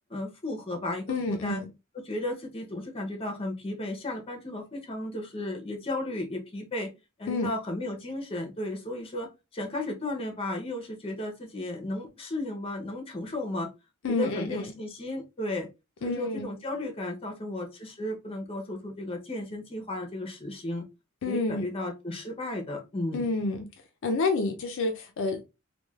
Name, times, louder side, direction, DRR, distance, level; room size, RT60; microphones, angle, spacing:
voice 1, 0.1-1.6 2.0-6.9 7.2-13.7 14.1-15.7 16.0-20.8 21.3-23.2, left 1 dB, 25° left, 2 dB, 0.7 m, -34 dB
voice 2, 1.1-1.7 7.3-7.5 14.0-14.7 16.0-16.5 21.2-21.7 23.1-23.7 24.0-25.4, left 3 dB, 65° left, 5 dB, 0.4 m, -29 dB
3.1 x 2.2 x 2.3 m, 0.26 s
head